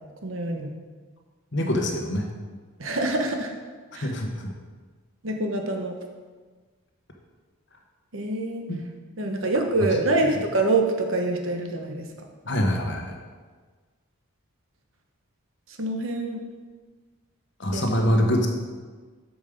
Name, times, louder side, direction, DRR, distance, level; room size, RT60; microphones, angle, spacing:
voice 1, 0.2-0.7 2.8-3.5 3.9-4.1 5.2-5.9 8.1-8.6 9.2-12.3 15.8-16.4 17.7-17.8, right 2 dB, 65° right, 3 dB, 1.0 m, -25 dB
voice 2, 1.5-2.2 4.0-4.5 8.7-8.8 12.5-13.1 17.6-18.5, equal, 55° left, 3 dB, 1.1 m, -24 dB
7.1 x 6.4 x 5.2 m, 1.4 s
head